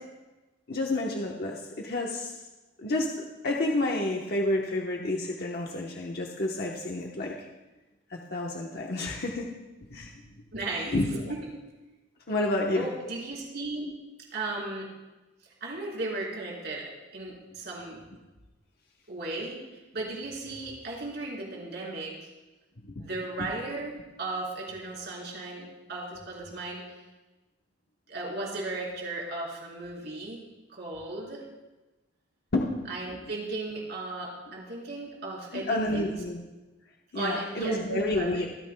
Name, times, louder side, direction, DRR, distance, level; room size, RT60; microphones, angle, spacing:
voice 1, 0.7-2.4 2.8-7.3 8.1-9.5 9.9-10.1 10.9-11.3 12.3-12.8 22.8-23.1 23.4-23.5 32.5-32.7 35.5-36.4 37.1-38.5, left 1 dB, 55° left, -1 dB, 1.1 m, -29 dB
voice 2, 10.5-11.4 12.7-13.9 14.3-14.9 15.6-18.0 19.1-19.6 19.9-22.3 23.0-26.8 28.1-30.4 30.7-31.4 32.9-36.1 37.1-38.3, right 2 dB, 60° right, -4 dB, 4.0 m, -36 dB
25.5 x 9.0 x 2.3 m, 1.1 s
head